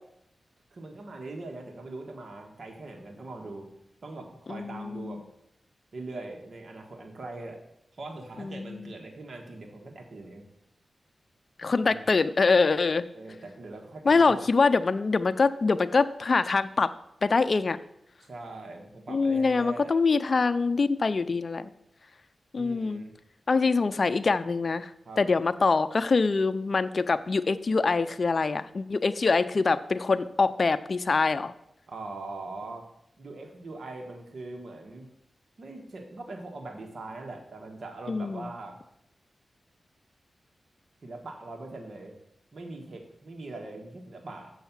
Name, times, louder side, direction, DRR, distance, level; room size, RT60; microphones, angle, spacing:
voice 1, 0.7-3.7 4.0-5.2 5.9-7.6 7.9-10.4 11.8-12.1 13.1-14.5 18.2-20.0 22.5-23.1 25.0-25.2 31.9-32.8 33.2-35.1 35.6-38.8 41.0-42.1 42.5-44.5, right 2 dB, 65° right, 2 dB, 1.5 m, -41 dB
voice 2, 4.5-5.2 8.4-8.9 11.6-13.1 14.1-16.9 17.2-17.8 19.1-21.7 22.5-23.0 23.5-24.9 25.2-31.5 38.1-38.4, left 4 dB, 55° left, 12 dB, 0.4 m, -24 dB
6.9 x 6.4 x 7.3 m, 0.77 s
cardioid pair, 55°, 0 cm